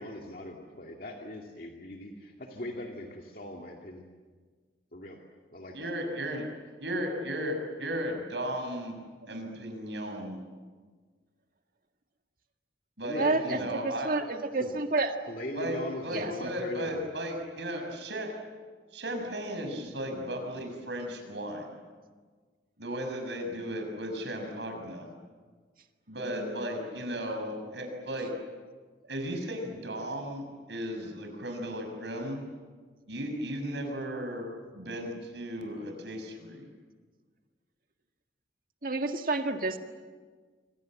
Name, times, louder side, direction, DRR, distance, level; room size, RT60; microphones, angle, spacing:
voice 1, 0.0-4.1 4.9-5.2 5.5-6.1 13.0-13.7 14.6-14.7 15.3-17.1, left 1 dB, 50° left, 1 dB, 2.3 m, -40 dB
voice 2, 5.7-6.4 6.8-10.4 13.0-14.1 15.5-18.3 18.9-21.7 22.8-25.1 26.1-28.3 29.1-32.4 33.1-34.5 34.7-36.7, equal, 70° right, 4 dB, 6.4 m, -35 dB
voice 3, 13.1-13.6 13.8-15.2 16.1-16.5 26.3-26.7 38.8-39.8, right 2 dB, 50° right, 5 dB, 1.9 m, -30 dB
26.5 x 26.0 x 7.7 m, 1.5 s
head